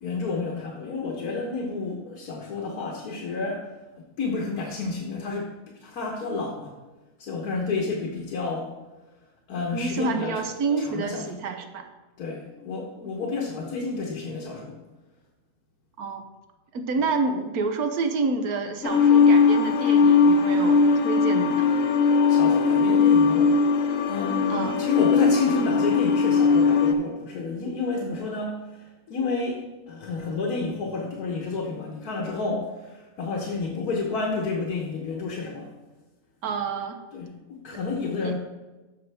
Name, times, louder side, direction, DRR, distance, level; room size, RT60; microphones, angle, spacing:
voice 1, 0.0-3.7 4.0-5.5 5.8-6.7 7.2-8.7 9.5-10.3 10.8-11.2 12.2-14.8 22.3-23.6 24.1-35.7 37.1-38.3, left 3 dB, 80° left, -1 dB, 1.7 m, -30 dB
voice 2, 9.7-11.9 16.0-16.2 16.7-21.7 24.5-24.8 36.4-37.0 38.2-38.3, right 4 dB, 75° right, 6 dB, 1.4 m, -28 dB
sound 1, 18.8-26.9, left 5 dB, 65° left, 1.1 m, -19 dB
14.0 x 5.1 x 3.4 m, 1.2 s
omnidirectional pair, 1.6 m